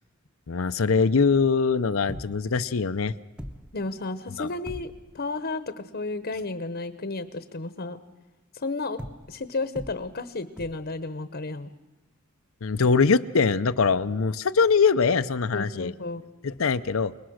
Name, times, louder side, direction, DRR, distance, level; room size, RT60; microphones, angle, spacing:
voice 1, 0.5-3.1 4.4-4.5 12.6-15.9 16.4-17.1, left 5 dB, 75° left, 10 dB, 0.7 m, -22 dB
sound 1, 2.1-2.6 3.0-3.1 3.4-3.9 4.7-5.2 9.0-9.5 9.8-10.2 10.6-11.0 13.4-13.5, equal, 5° right, 1.1 m, -41 dB
voice 2, 3.7-8.0 8.5-9.0 9.3-11.7 13.9-14.0 15.5-16.2, left 3 dB, 50° left, 11 dB, 1.0 m, -32 dB
29.0 x 20.0 x 6.4 m, 1.1 s
head